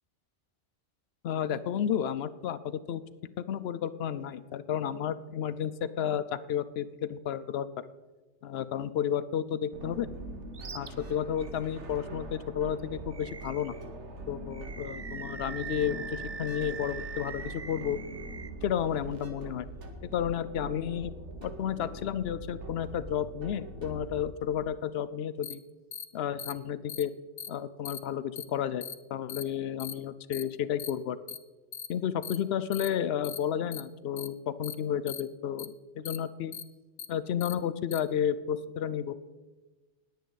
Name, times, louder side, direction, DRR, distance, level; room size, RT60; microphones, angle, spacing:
voice 1, 1.2-3.0 3.4-7.7 8.4-10.1 10.7-13.7 14.3-18.0 18.6-19.7 20.0-21.1 21.4-25.6 26.1-27.1 27.5-31.2 31.9-36.5 37.1-39.1, left 9 dB, 65° left, 15 dB, 0.8 m, -32 dB
sound 1, 9.7-24.2, right 1 dB, 80° right, 1.6 m, -43 dB
Animal, 10.5-10.9 11.4-11.5 13.1-13.9 14.5-18.5, right 5 dB, 40° right, 0.4 m, -42 dB
sound 2, 25.4-25.5 25.9-26.0 26.4-26.5 26.9-27.0 27.4-27.5 27.8-28.0 28.4-28.5 28.8-28.9 29.3-29.4 29.8-29.9 30.3-30.4 30.8-30.9 31.3-31.4 31.7-31.9 32.2-32.4 32.7-32.9 33.2-33.4 33.7-33.8 34.2-34.3 34.6-34.7 35.1-35.2 35.6-35.7 36.0-36.2 36.5-36.6 37.0-37.1 37.4-37.5 37.9-38.0, left 8 dB, 85° left, 1.1 m, -39 dB
19.5 x 8.4 x 4.0 m, 1.2 s
omnidirectional pair, 1.2 m